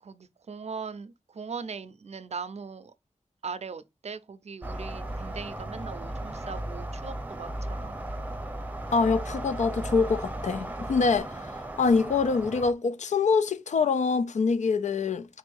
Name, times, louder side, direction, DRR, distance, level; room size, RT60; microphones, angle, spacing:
voice 1, 0.0-2.9 3.4-8.0, right 5 dB, 65° right, 0.5 m, -39 dB
sound 1, 4.6-11.2, right 1 dB, 10° left, 1.0 m, -38 dB
sound 2, 4.6-12.7, right 2 dB, 15° right, 0.6 m, -39 dB
voice 2, 8.9-11.5 11.8-15.3, left 4 dB, 80° left, 0.4 m, -25 dB
3.9 x 2.6 x 4.6 m
wide cardioid pair, 75°, 12 cm